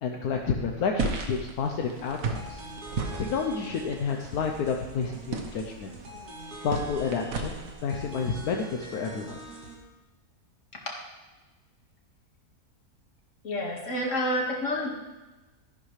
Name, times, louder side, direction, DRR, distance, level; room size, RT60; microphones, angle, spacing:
voice 1, 0.0-2.6 3.2-5.9 6.6-9.4, left 5 dB, 80° left, 2 dB, 1.3 m, -30 dB
sound 1, 1.0-7.7, right 4 dB, 65° right, 1.5 m, -35 dB
sound 2, 2.4-9.7, right 2 dB, 85° right, 2.1 m, -44 dB
voice 2, 13.4-14.9, left 1 dB, 55° left, -1 dB, 2.3 m, -28 dB
13.5 x 11.0 x 3.3 m, 1.1 s
omnidirectional pair, 1.6 m